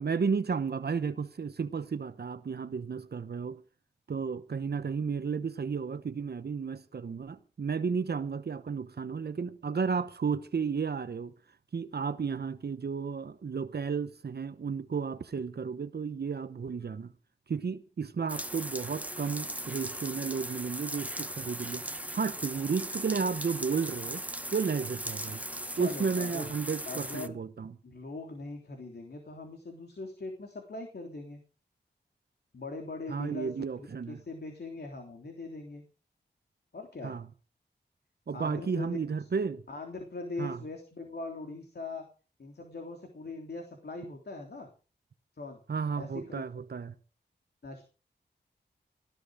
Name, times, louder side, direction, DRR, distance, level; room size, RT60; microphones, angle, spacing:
voice 1, 0.0-3.6 4.1-11.3 11.7-17.1 17.5-24.2 24.5-25.4 25.8-27.7 33.1-34.2 37.0-37.3 38.3-39.6 40.4-40.6 45.7-47.0, right 5 dB, 65° right, 1.0 m, -33 dB
sound 1, 18.3-27.3, right 1 dB, 10° right, 1.2 m, -38 dB
voice 2, 25.7-26.5 26.9-27.4 27.8-31.4 32.5-35.8 36.7-37.2 38.3-39.0 39.7-42.1 42.4-44.7 45.3-45.6 46.0-46.5 47.6-47.8, left 3 dB, 65° left, 3.3 m, -41 dB
18.0 x 12.5 x 4.9 m
cardioid pair, 60°, 18 cm